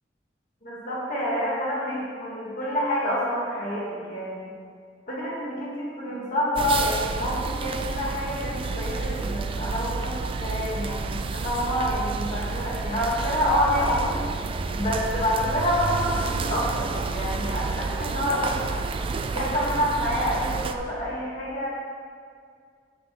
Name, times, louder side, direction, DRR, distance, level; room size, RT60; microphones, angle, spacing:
voice 1, 0.6-4.5 5.1-14.2 14.7-18.6 19.3-21.7, equal, 45° left, -7 dB, 1.5 m, -27 dB
sound 1, 6.6-20.7, right 4 dB, 30° right, 0.3 m, -30 dB
8.6 x 3.0 x 5.7 m, 2.1 s
head